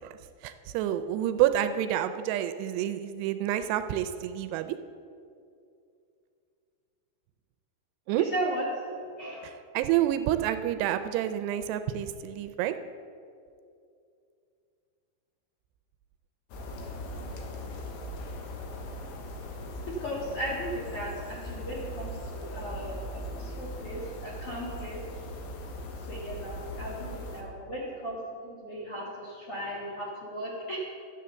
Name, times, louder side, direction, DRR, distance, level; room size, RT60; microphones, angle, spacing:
voice 1, 0.0-4.8 8.1-8.3 9.4-12.8, right 12 dB, 85° right, 10 dB, 2.6 m, -28 dB
voice 2, 8.2-8.6 8.9-9.5 19.9-25.0 26.1-28.2 28.4-30.9, right 1 dB, 50° left, -4 dB, 1.8 m, -36 dB
sound 1, 16.5-27.4, left 1 dB, 90° left, 3.5 m, -39 dB
13.0 x 8.7 x 6.8 m, 2.5 s
omnidirectional pair, 5.0 m